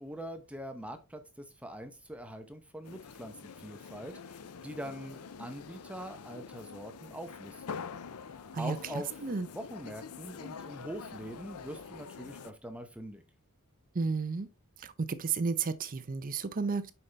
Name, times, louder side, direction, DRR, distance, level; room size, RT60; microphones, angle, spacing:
voice 1, 0.0-7.6 8.6-9.1 9.5-13.2, equal, 5° right, 0.8 m, -43 dB
sound 1, 2.8-12.5, left 6 dB, 80° left, 0.5 m, -46 dB
voice 2, 8.5-9.5 13.9-14.5 14.8-16.9, right 4 dB, 40° right, 0.5 m, -33 dB
6.9 x 5.4 x 3.3 m
head